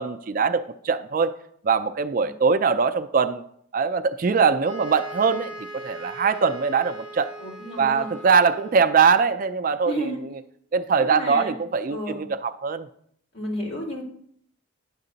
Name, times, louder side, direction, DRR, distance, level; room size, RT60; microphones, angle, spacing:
voice 1, 0.0-1.3 1.6-3.4 3.7-7.3 7.8-10.1 10.7-12.9, right 5 dB, 40° right, 11 dB, 0.3 m, -22 dB
sound 1, 4.6-9.0, right 1 dB, 10° left, 2.5 m, -40 dB
voice 2, 7.4-8.1 9.8-10.2 11.0-11.5 11.9-12.2 13.3-14.0, left 1 dB, 50° left, -4 dB, 2.7 m, -32 dB
9.6 x 6.6 x 3.9 m, 0.66 s
head